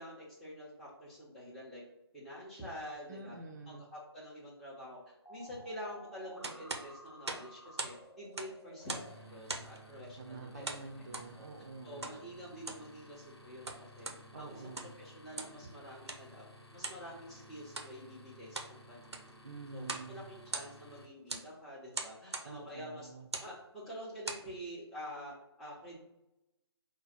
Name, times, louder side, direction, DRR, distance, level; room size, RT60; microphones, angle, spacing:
voice 1, 0.0-1.8 2.1-3.4 3.7-10.8 11.3-11.5 11.8-14.1 14.3-16.5 16.7-19.0 19.7-23.1 23.4-26.0, equal, ahead, -9 dB, 0.7 m, -47 dB
voice 2, 3.1-3.9 10.2-12.2 14.3-14.9 19.4-20.3 22.4-23.3, right 3 dB, 40° right, 2 dB, 0.6 m, -48 dB
sound 1, 5.3-9.2, equal, 90° left, 1.0 m, -53 dB
sound 2, 6.4-8.0 8.3-9.1 9.5-9.8 10.6-11.3 12.0-12.2 12.5-12.9 13.5-14.2 14.6-15.0 15.3-15.6 16.1-16.2 16.8-17.0 17.7-17.9 18.3-18.7 19.0-19.4 19.8-20.1 20.4-20.9 21.3-21.5 21.9-22.5 23.2-23.5 24.0-24.5, right 3 dB, 75° right, 0.7 m, -41 dB
sound 3, 8.8-21.1, equal, 75° left, 1.1 m, -56 dB
4.7 x 2.2 x 4.1 m, 0.91 s
figure-of-eight pair, 145°, 14 cm